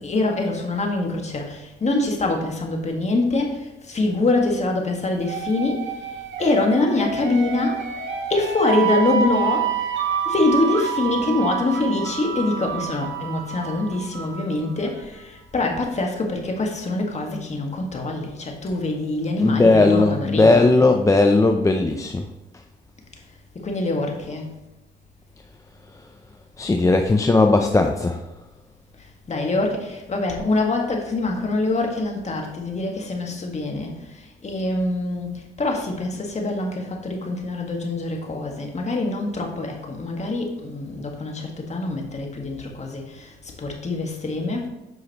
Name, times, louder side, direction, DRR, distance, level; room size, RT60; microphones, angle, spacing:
voice 1, 0.0-7.9 8.3-9.7 10.3-20.8 23.6-24.5 29.0-44.7, left 2 dB, 35° left, 1 dB, 1.6 m, -24 dB
sound 1, 5.2-14.9, right 7 dB, 70° right, 1.4 m, -28 dB
voice 2, 19.4-22.3 26.6-28.2, left 2 dB, 15° left, 4 dB, 0.5 m, -17 dB
8.2 x 5.6 x 3.0 m, 1.0 s
cardioid pair, 90°, 20 cm